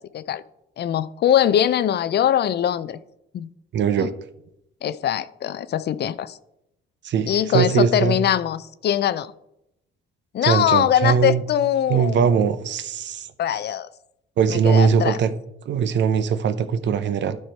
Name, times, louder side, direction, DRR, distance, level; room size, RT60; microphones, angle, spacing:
voice 1, 0.8-3.0 3.3-3.5 4.0-4.1 4.8-6.4 7.3-9.3 10.3-12.4 13.4-13.9 14.5-15.2, left 10 dB, 55° left, 15 dB, 0.5 m, -22 dB
voice 2, 3.7-4.1 7.0-8.2 10.4-11.4 11.9-13.3 14.4-15.3 15.7-17.4, right 7 dB, 65° right, 12 dB, 0.7 m, -20 dB
11.5 x 4.4 x 4.5 m, 0.82 s
cardioid pair, 90°, 20 cm